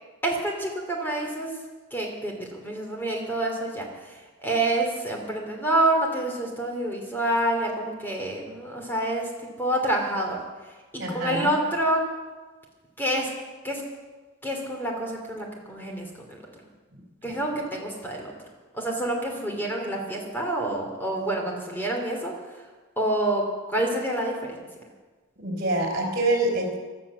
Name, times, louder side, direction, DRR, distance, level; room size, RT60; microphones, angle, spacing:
voice 1, 0.2-1.5 1.9-9.3 9.6-10.4 10.9-12.0 13.0-13.3 13.6-13.8 14.4-16.4 17.2-18.3 18.7-22.6 23.0-24.6, right 1 dB, 10° left, 1 dB, 2.8 m, -27 dB
voice 2, 11.0-11.5 17.2-17.4 25.4-26.8, right 2 dB, 45° right, 2 dB, 3.9 m, -26 dB
17.0 x 12.0 x 6.9 m, 1.3 s
head